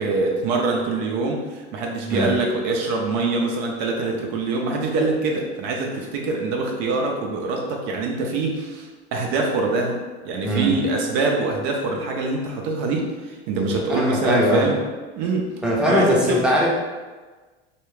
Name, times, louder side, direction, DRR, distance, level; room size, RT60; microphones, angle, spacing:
voice 1, 0.0-10.0 10.2-14.8 15.1-15.5 15.9-16.5, right 3 dB, 60° right, 0 dB, 0.6 m, -24 dB
voice 2, 10.4-10.8 13.7-14.7 15.6-16.7, equal, 5° right, -4 dB, 0.6 m, -21 dB
2.4 x 2.3 x 3.1 m, 1.3 s
hypercardioid pair, 95°, 32 cm